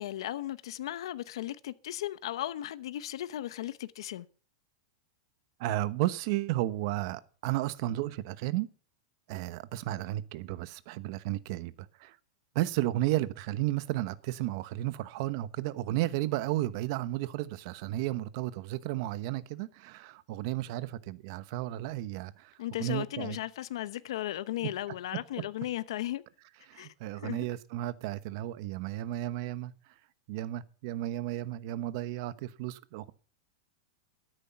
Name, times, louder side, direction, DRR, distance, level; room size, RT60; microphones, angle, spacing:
voice 1, 0.0-4.3 22.6-26.2 26.7-27.4, left 13 dB, 75° left, 0.8 m, -36 dB
voice 2, 5.6-8.7 9.3-12.1 12.5-22.5 22.8-23.4 26.7-29.7 30.3-33.1, right 15 dB, 50° right, 1.1 m, -33 dB
13.0 x 9.8 x 5.9 m
supercardioid pair, 150°, 3 cm